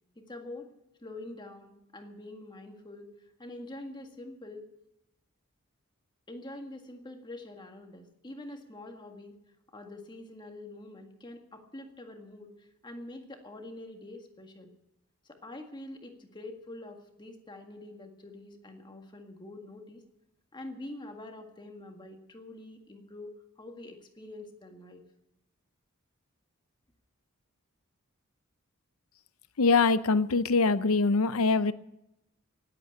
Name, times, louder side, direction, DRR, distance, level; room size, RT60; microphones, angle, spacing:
voice 1, 0.2-0.7 1.0-3.1 3.4-4.7 6.3-9.4 9.7-14.7 15.2-20.0 20.5-25.0, left 2 dB, 20° left, 4 dB, 1.7 m, -45 dB
voice 2, 29.6-31.7, left 4 dB, 85° left, 15 dB, 0.7 m, -23 dB
18.5 x 8.5 x 8.7 m, 0.86 s
head